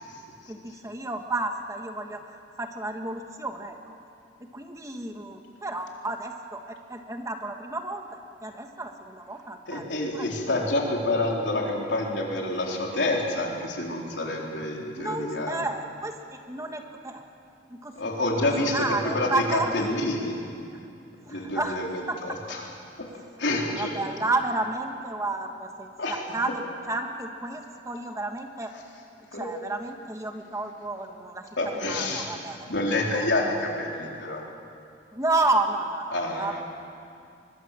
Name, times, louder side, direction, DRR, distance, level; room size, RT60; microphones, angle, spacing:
voice 1, 0.5-4.0 4.4-9.8 10.1-10.3 15.0-17.2 17.7-17.9 18.3-19.7 21.2-21.8 22.1-22.4 23.7-28.7 29.3-31.5 31.8-32.7 33.1-33.3 35.1-36.6, right 2 dB, 15° right, 4 dB, 1.4 m, -31 dB
voice 2, 9.7-15.6 18.0-18.8 19.1-20.4 21.3-22.6 23.4-23.9 26.0-26.2 29.3-29.5 31.6-32.3 32.7-34.4 36.1-36.6, left 2 dB, 70° left, -1 dB, 4.0 m, -28 dB
24.0 x 21.0 x 7.5 m, 2.4 s
head